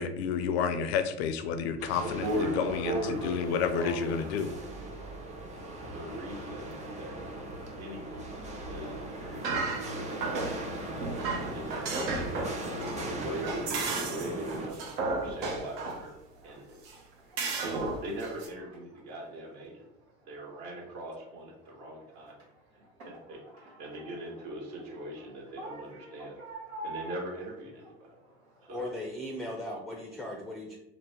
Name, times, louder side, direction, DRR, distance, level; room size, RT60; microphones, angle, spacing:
voice 1, 0.0-4.5, left 6 dB, 80° left, 9 dB, 0.5 m, -30 dB
sound 1, 1.8-14.7, right 1 dB, 20° right, 0.8 m, -39 dB
voice 2, 2.0-4.9 5.8-7.2 7.8-8.3 8.7-8.9 9.2-10.5 11.5-12.3 13.1-16.1 16.4-16.8 17.6-19.8 20.3-22.3 22.8-26.4 26.8-28.1 28.7-28.8, right 1 dB, 55° right, -2 dB, 1.3 m, -39 dB
sound 2, 9.3-10.7 11.0-16.1 16.9-17.0 17.4-18.5, right 3 dB, 75° right, 0.8 m, -33 dB
sound 3, 12.7-29.1, right 1 dB, 90° right, 1.2 m, -50 dB
voice 3, 28.7-30.8, left 1 dB, ahead, 0 dB, 0.4 m, -37 dB
2.8 x 2.1 x 3.4 m, 0.87 s
hypercardioid pair, 80°, 32 cm